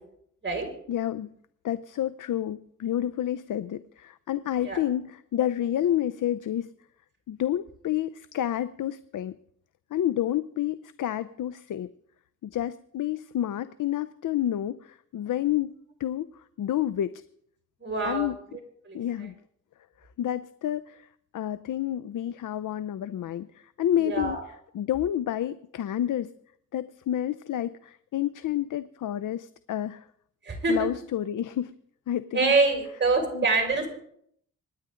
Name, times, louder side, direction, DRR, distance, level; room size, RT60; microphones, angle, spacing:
voice 1, 0.9-1.3 1.6-6.7 7.3-9.4 9.9-11.9 12.4-15.7 16.0-17.2 18.0-18.4 18.9-19.3 20.2-21.1 21.3-24.4 24.7-26.3 26.7-30.1 30.7-31.7 32.1-32.5 33.3-33.5, left 11 dB, 75° left, 15 dB, 0.6 m, -29 dB
voice 2, 17.8-18.3 18.9-19.0 24.0-24.4 30.4-30.9 32.3-34.0, right 3 dB, 35° right, 1 dB, 5.5 m, -25 dB
26.0 x 10.5 x 3.8 m, 0.68 s
cardioid pair, 80°, 32 cm